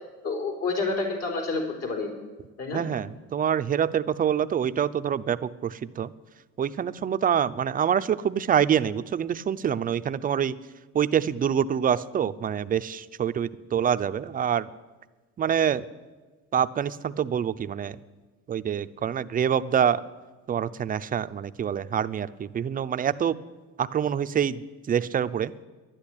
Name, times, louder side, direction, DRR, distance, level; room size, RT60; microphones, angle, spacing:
voice 1, 0.2-2.1 2.6-2.8, left 3 dB, 60° left, 1 dB, 4.4 m, -29 dB
voice 2, 2.7-6.1 6.6-10.6 10.9-14.7 15.4-15.9 16.5-18.0 18.5-20.0 20.5-23.4 23.8-25.5, right 8 dB, 30° right, 13 dB, 0.5 m, -26 dB
11.5 x 10.5 x 10.0 m, 1.3 s
cardioid pair, 120°, 29 cm